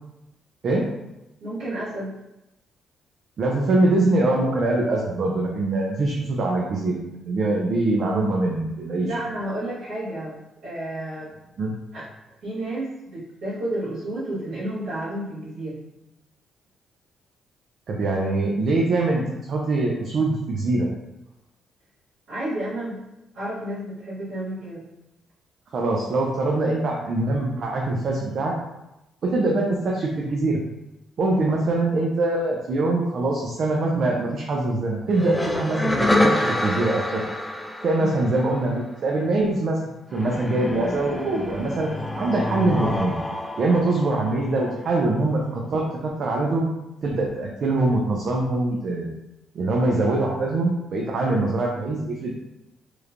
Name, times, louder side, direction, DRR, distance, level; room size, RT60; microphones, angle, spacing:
voice 1, 1.4-2.1 9.0-10.4 10.6-11.3 11.9-12.1 12.4-15.8 22.3-23.0 23.3-24.9 38.0-38.1 51.1-51.4, right 1 dB, 80° right, -12 dB, 1.2 m, -31 dB
voice 2, 3.4-9.1 11.6-11.8 17.9-20.9 25.7-28.5 29.2-30.6 31.2-37.2 37.8-39.8 40.1-43.2 43.6-46.7 47.0-49.1 49.5-52.3, right 2 dB, 55° right, -2 dB, 0.4 m, -23 dB
sound 1, 35.1-38.8 40.1-44.8, left 1 dB, 5° left, 0.3 m, -27 dB
3.0 x 2.1 x 2.4 m, 0.92 s
cardioid pair, 90°, 0 cm